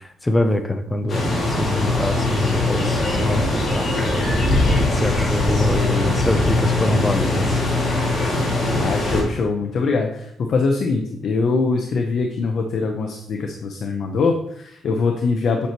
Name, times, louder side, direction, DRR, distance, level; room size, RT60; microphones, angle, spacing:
voice 1, 0.0-3.9 4.6-7.7, left 1 dB, 10° left, 6 dB, 0.6 m, -24 dB
sound 1, 1.1-9.2, left 2 dB, 30° left, 2.3 m, -21 dB
voice 2, 8.8-15.7, left 4 dB, 45° left, 3 dB, 0.7 m, -22 dB
8.2 x 5.8 x 3.0 m, 0.71 s
cardioid pair, 175°, 0 cm